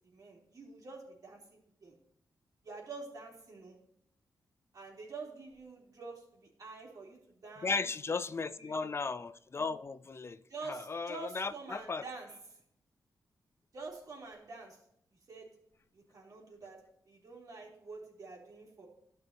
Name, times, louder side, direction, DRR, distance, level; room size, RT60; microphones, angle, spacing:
voice 1, 0.1-2.0 2.6-3.8 4.7-7.9 8.3-8.9 10.5-12.4 13.7-14.8 15.3-15.5 15.9-16.8 17.1-18.9, right 3 dB, 55° right, 3.8 m, -47 dB
voice 2, 7.6-10.4 10.6-12.0, left 4 dB, 35° left, 0.4 m, -36 dB
13.0 x 6.1 x 3.0 m
cardioid pair, 90°, 7 cm